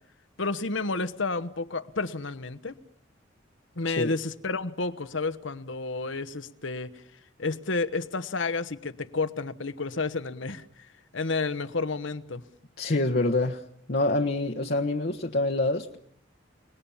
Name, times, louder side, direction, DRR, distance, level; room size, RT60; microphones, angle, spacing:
voice 1, 0.4-2.8 3.7-7.0 7.4-12.4, left 3 dB, 75° left, 1.2 m, -31 dB
voice 2, 12.8-13.6 13.9-16.0, left 2 dB, 50° left, 1.2 m, -26 dB
29.5 x 19.5 x 7.2 m
head